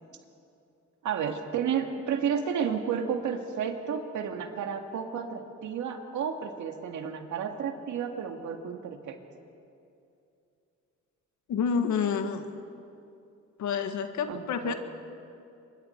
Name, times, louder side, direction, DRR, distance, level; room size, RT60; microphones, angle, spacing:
voice 1, 1.0-9.2 14.3-14.7, right 7 dB, 75° right, 5 dB, 2.0 m, -32 dB
voice 2, 11.5-12.5 13.6-14.7, left 6 dB, 70° left, 7 dB, 1.7 m, -28 dB
25.5 x 23.0 x 4.5 m, 2.7 s
cardioid pair, 90°, 30 cm